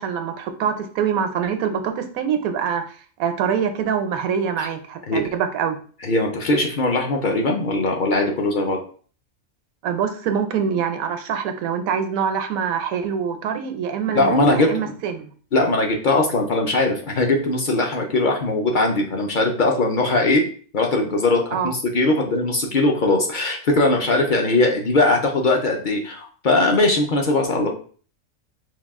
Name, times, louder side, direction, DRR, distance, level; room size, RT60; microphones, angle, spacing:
voice 1, 0.0-5.8 9.8-15.3 21.5-21.7, right 7 dB, 80° right, 7 dB, 1.0 m, -24 dB
voice 2, 6.0-8.8 14.1-14.7 15.5-20.4 20.7-27.7, left 2 dB, 55° left, 2 dB, 0.5 m, -20 dB
4.6 x 2.3 x 3.5 m, 0.43 s
omnidirectional pair, 1.5 m